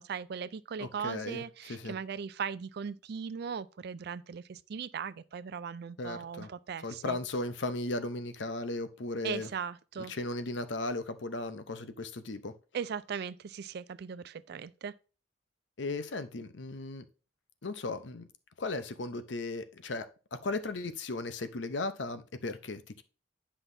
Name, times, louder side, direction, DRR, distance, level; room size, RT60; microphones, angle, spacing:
voice 1, 0.0-7.2 9.2-10.1 12.7-14.9, right 6 dB, 60° right, 0.4 m, -38 dB
voice 2, 0.8-1.4 1.7-2.0 6.0-6.5 6.8-9.5 10.0-12.5 15.8-17.1 17.6-18.3 18.6-20.1 20.3-23.0, left 2 dB, 75° left, 0.7 m, -36 dB
9.9 x 5.6 x 2.7 m
head